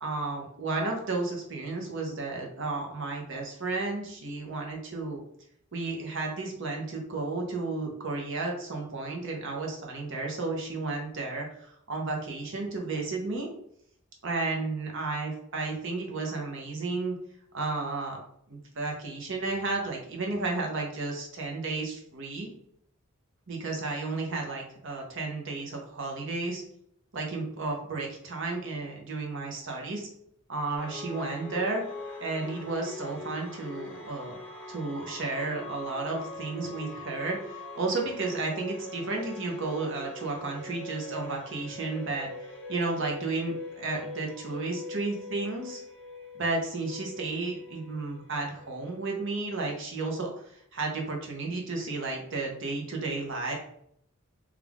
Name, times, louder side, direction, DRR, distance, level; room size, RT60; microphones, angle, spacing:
voice 1, 0.0-5.2 5.7-13.5 14.2-17.2 17.5-18.2 18.5-22.5 23.5-26.6 27.1-30.1 30.5-31.8 32.2-34.4 34.7-45.8 46.3-53.5, right 3 dB, 60° right, 0 dB, 0.8 m, -33 dB
sound 1, 30.7-49.6, left 2 dB, 5° left, 0.8 m, -42 dB
3.2 x 2.3 x 3.5 m, 0.69 s
head